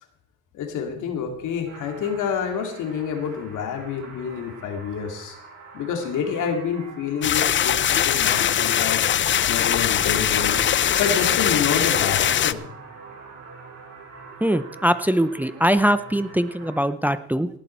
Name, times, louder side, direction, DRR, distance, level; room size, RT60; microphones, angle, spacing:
voice 1, 0.5-5.3 5.7-9.0 9.5-10.6 11.0-12.6, left 7 dB, 85° left, 4 dB, 2.3 m, -28 dB
sound 1, 1.7-16.8, right 5 dB, 65° right, 5.4 m, -44 dB
sound 2, 7.2-12.5, left 10 dB, 40° left, 0.5 m, -21 dB
voice 2, 14.4-17.5, equal, 5° right, 13 dB, 0.6 m, -22 dB
18.0 x 8.5 x 4.4 m, 0.72 s
cardioid pair, 90°, 30 cm